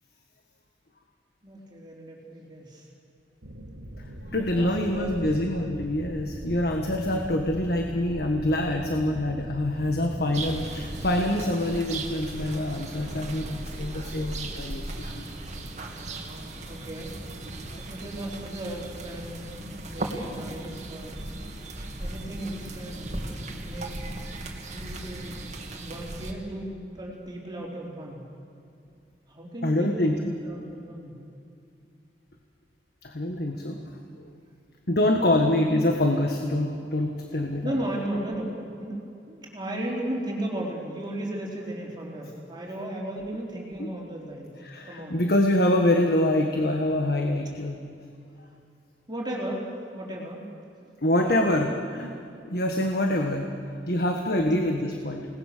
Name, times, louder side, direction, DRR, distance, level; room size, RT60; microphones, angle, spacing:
voice 1, 1.4-2.9 4.4-5.3 16.7-17.1 17.8-21.2 22.0-23.1 23.6-24.0 24.7-25.4 25.8-28.2 29.3-31.2 35.2-35.9 37.6-44.5 44.8-45.2 47.9-48.0 49.1-50.4 51.2-51.6 54.3-54.8, right 1 dB, 25° right, -3 dB, 4.1 m, -35 dB
sound 1, 3.4-11.2, right 1 dB, 80° right, 1.7 m, -40 dB
voice 2, 4.3-15.2 29.6-30.4 33.0-33.8 34.2-34.3 34.9-37.7 43.8-43.9 44.6-47.8 51.0-52.1 52.5-55.3, left 1 dB, 60° left, 3 dB, 1.6 m, -25 dB
sound 2, 10.3-26.3, right 2 dB, 40° right, 2.5 m, -37 dB
29.0 x 19.5 x 6.8 m, 2.5 s
head